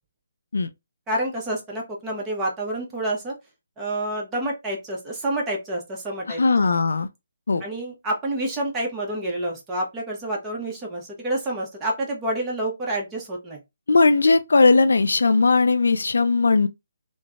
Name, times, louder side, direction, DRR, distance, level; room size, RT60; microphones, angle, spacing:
voice 1, 1.1-3.4 3.8-6.4 7.6-13.6, right 1 dB, 15° right, 0.8 m, -28 dB
voice 2, 6.3-7.1 7.5-7.6 13.9-16.7, left 3 dB, 75° left, 0.3 m, -18 dB
3.2 x 2.1 x 2.4 m
hypercardioid pair, 155°, 0 cm